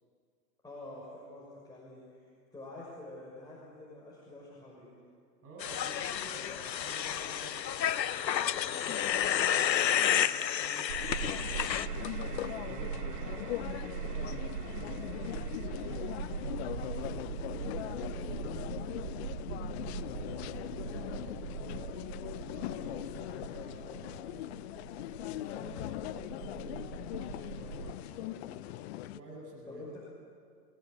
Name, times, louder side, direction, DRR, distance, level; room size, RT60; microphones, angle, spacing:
voice 1, 0.6-4.9 12.6-12.9 29.7-30.0, left 2 dB, 10° left, -6 dB, 6.1 m, -47 dB
voice 2, 5.4-11.9 12.3-15.9 16.5-19.1 20.1-24.5 25.2-29.8, right 1 dB, 30° right, -2 dB, 7.7 m, -50 dB
sound 1, 5.6-11.9, left 10 dB, 90° left, 1.0 m, -30 dB
sound 2, 10.9-27.9, right 8 dB, 70° right, 2.6 m, -41 dB
sound 3, 11.2-29.2, left 15 dB, 40° left, 0.7 m, -40 dB
27.0 x 17.5 x 9.9 m, 2.2 s
hypercardioid pair, 125°, 50 cm